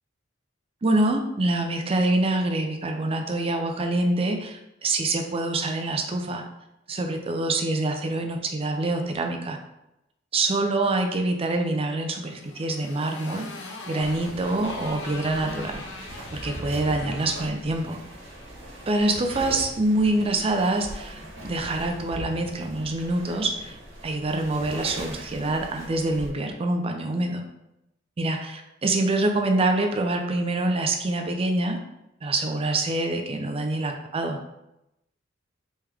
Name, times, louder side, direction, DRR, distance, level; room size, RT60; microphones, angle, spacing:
voice 1, 0.8-6.4 6.9-9.6 10.3-13.5 13.9-16.1 16.4-18.0 18.9-23.7 24.0-27.4 28.2-31.8 32.2-34.4, right 2 dB, 30° right, 4 dB, 0.4 m, -25 dB
Motorcycle, 12.1-18.5, left 3 dB, 70° left, 0.5 m, -42 dB
sound 1, 14.0-26.3, right 1 dB, 85° right, 1.2 m, -40 dB
3.3 x 3.1 x 3.5 m, 0.87 s
head